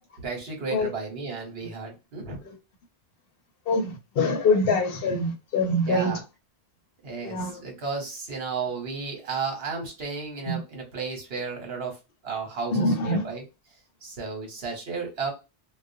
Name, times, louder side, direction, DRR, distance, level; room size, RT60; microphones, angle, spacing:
voice 1, 0.2-2.4 5.9-6.2 7.0-12.0 12.2-13.4 14.0-15.3, right 5 dB, 65° right, 1.1 m, -33 dB
voice 2, 3.7-6.2 7.2-7.6 10.5-10.6 12.7-13.2, left 2 dB, 65° left, 0.8 m, -24 dB
2.3 x 2.1 x 2.5 m
omnidirectional pair, 1.1 m